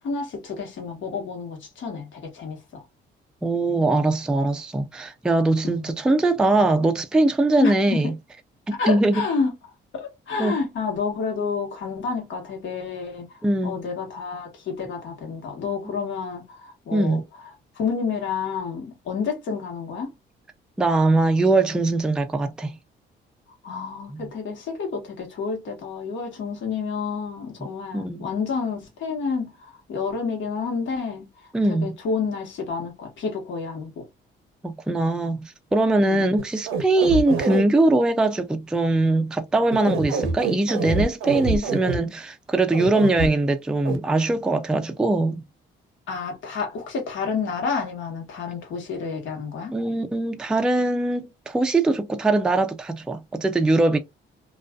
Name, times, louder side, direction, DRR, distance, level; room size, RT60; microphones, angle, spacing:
voice 1, 0.0-2.8 5.6-6.0 7.6-8.1 8.8-9.5 9.9-17.2 17.8-20.1 23.6-31.2 31.7-34.1 36.0-36.3 39.9-40.0 46.1-49.7, left 5 dB, 70° left, 1.2 m, -29 dB
voice 2, 3.4-8.1 8.7-9.3 10.4-10.6 13.4-13.8 16.9-17.2 20.8-22.8 24.1-24.3 27.9-28.2 31.5-32.0 34.6-45.4 49.7-54.0, right 2 dB, 5° right, 0.3 m, -21 dB
sound 1, 36.4-37.6 39.7-42.0 42.7-43.3 43.9-44.0, right 4 dB, 90° right, 0.6 m, -25 dB
2.4 x 2.3 x 2.2 m
cardioid pair, 90°, 20 cm